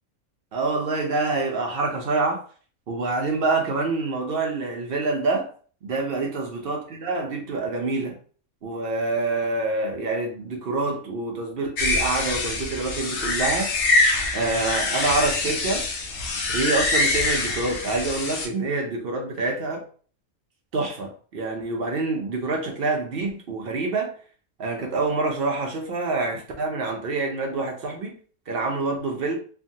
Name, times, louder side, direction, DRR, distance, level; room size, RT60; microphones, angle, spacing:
voice 1, 0.5-2.4 2.9-5.5 5.8-8.2 8.6-13.7 14.3-15.8 16.5-19.8 20.7-24.1 24.6-28.1 28.5-29.4, right 3 dB, 60° right, 0.6 m, -26 dB
sound 1, 11.8-18.5, left 2 dB, 65° left, 0.5 m, -24 dB
3.2 x 2.2 x 2.6 m
omnidirectional pair, 1.5 m